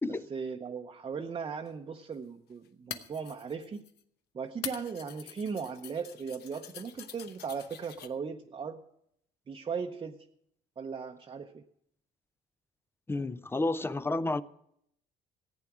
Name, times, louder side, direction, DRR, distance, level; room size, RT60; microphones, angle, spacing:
voice 1, 0.1-3.8 4.3-8.8 9.5-10.3 10.8-11.6, right 6 dB, 30° right, 0.7 m, -38 dB
sound 1, 1.7-1.8 2.7-4.0 4.6-8.1, left 9 dB, 75° left, 0.9 m, -45 dB
voice 2, 13.1-14.4, left 2 dB, 15° left, 0.4 m, -31 dB
14.5 x 9.0 x 6.0 m
cardioid pair, 110°, 17 cm